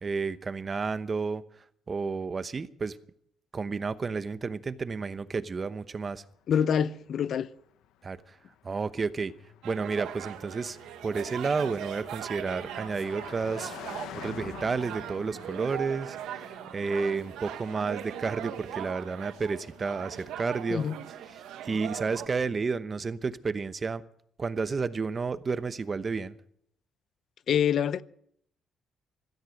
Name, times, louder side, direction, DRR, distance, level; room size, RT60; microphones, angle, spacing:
voice 1, 0.0-1.4 1.9-3.0 3.5-6.2 8.0-8.4 8.6-9.3 9.6-10.8 11.0-13.8 14.1-16.5 16.7-20.9 21.3-24.0 24.4-26.4, right 4 dB, 35° right, 0.9 m, -31 dB
Car passing by, 5.8-22.2, left 10 dB, 90° left, 1.0 m, -50 dB
voice 2, 6.5-7.5 20.7-21.0 27.5-28.0, left 8 dB, 65° left, 0.6 m, -26 dB
sound 1, 9.6-22.3, right 10 dB, 90° right, 1.4 m, -40 dB
16.5 x 13.5 x 6.4 m
cardioid pair, 90°, 0 cm